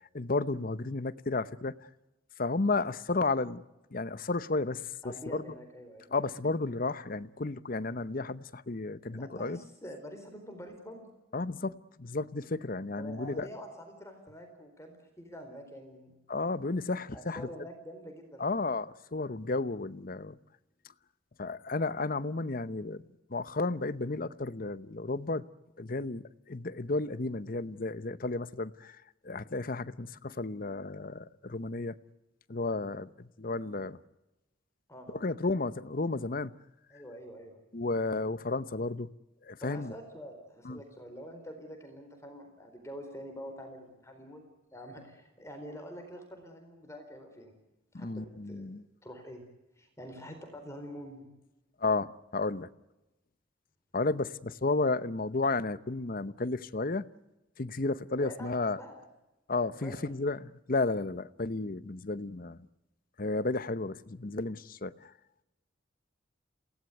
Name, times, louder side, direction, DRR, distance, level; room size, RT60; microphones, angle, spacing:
voice 1, 0.1-1.7 2.4-3.6 3.9-4.8 5.3-5.4 6.1-9.6 11.3-13.5 16.3-17.5 18.4-20.4 21.4-23.0 23.3-25.5 25.8-29.0 29.2-31.9 32.5-34.0 35.1-36.5 37.7-39.1 39.4-39.9 40.6-40.8 47.9-48.8 51.8-52.7 53.9-57.1 57.6-58.8 59.5-62.6 63.2-65.1, left 3 dB, 45° left, 0.8 m, -32 dB
voice 2, 5.0-6.1 9.1-11.1 13.0-16.1 17.1-18.5 34.9-35.2 36.9-37.6 39.6-47.5 47.9-48.7 49.0-49.5 49.8-51.3 58.2-59.0 59.8-60.1, equal, 15° left, 4.2 m, -46 dB
28.0 x 17.5 x 9.2 m
head